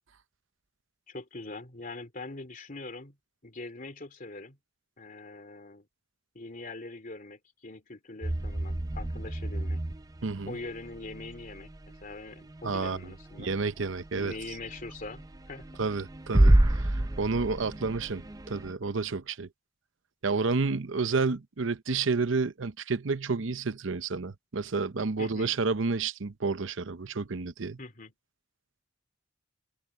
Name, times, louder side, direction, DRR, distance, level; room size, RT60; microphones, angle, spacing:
voice 1, 1.1-3.2 3.4-4.6 5.0-5.9 6.3-9.8 10.5-11.7 12.0-13.5 14.2-15.7 25.2-25.5 27.8-28.1, left 2 dB, 45° left, 2.9 m, -42 dB
sound 1, 8.2-18.7, right 1 dB, 20° right, 0.6 m, -29 dB
voice 2, 10.2-10.6 12.6-13.1 13.4-14.3 15.8-19.5 20.2-27.8, right 4 dB, 75° right, 0.8 m, -30 dB
head